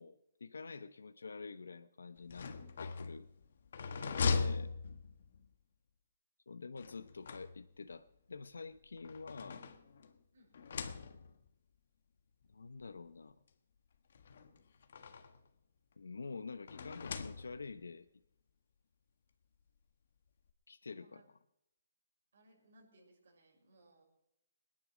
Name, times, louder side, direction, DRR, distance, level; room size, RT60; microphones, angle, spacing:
voice 1, 0.0-2.5 2.8-3.3 4.2-4.7 6.5-9.7 12.5-13.4 16.0-18.1 20.7-21.4, left 4 dB, 85° left, 12 dB, 0.8 m, -47 dB
sound 1, 2.2-5.5 6.8-7.9 8.8-10.2 10.5-11.5 12.4-12.5 12.8-12.9 14.1-15.5 16.7-17.8, left 4 dB, 60° left, 1.5 m, -40 dB
voice 2, 3.9-4.6 10.3-10.5 20.9-21.2 22.3-24.0, right 2 dB, 70° right, 0 dB, 6.5 m, -60 dB
20.0 x 10.5 x 6.2 m, 0.82 s
hypercardioid pair, 155°, 0 cm